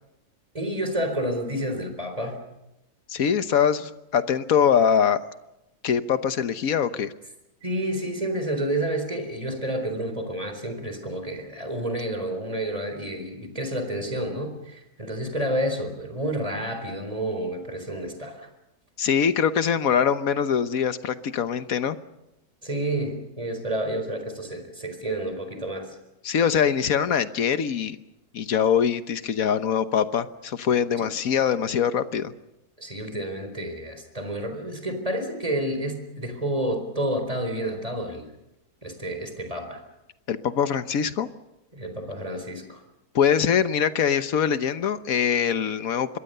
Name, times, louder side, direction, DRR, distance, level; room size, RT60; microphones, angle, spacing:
voice 1, 0.5-2.4 7.6-18.5 22.6-26.0 31.0-31.1 32.8-38.3 38.8-39.8 41.7-42.8, right 1 dB, 20° right, 6 dB, 4.3 m, -30 dB
voice 2, 3.1-5.2 5.8-7.1 19.0-22.0 26.2-28.0 28.3-32.3 40.3-41.3 43.1-46.2, left 7 dB, 60° left, 11 dB, 1.4 m, -23 dB
26.5 x 21.5 x 6.8 m, 0.92 s
omnidirectional pair, 1.7 m